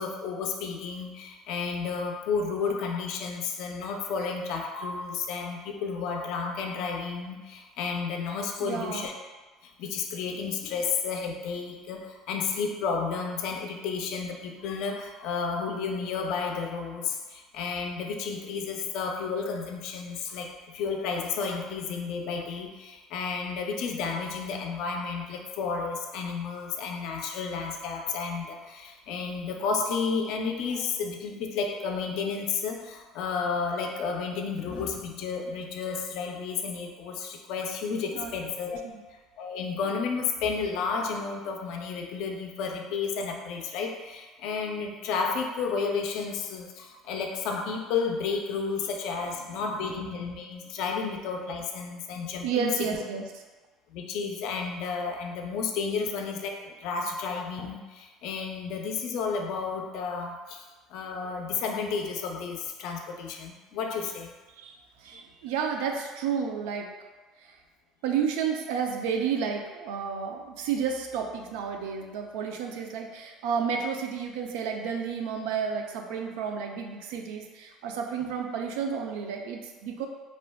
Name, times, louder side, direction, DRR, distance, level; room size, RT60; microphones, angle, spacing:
voice 1, 0.0-9.1 9.6-38.8 39.4-52.7 53.9-60.6 60.9-64.3, left 5 dB, 65° left, 3 dB, 0.4 m, -32 dB
voice 2, 8.6-9.1 38.1-38.3 38.8-39.0 52.4-53.3 64.6-66.9 67.4-67.6 68.0-80.1, right 6 dB, 85° right, 3 dB, 0.3 m, -31 dB
2.4 x 2.1 x 3.4 m, 1.3 s
cardioid pair, 125°, 0 cm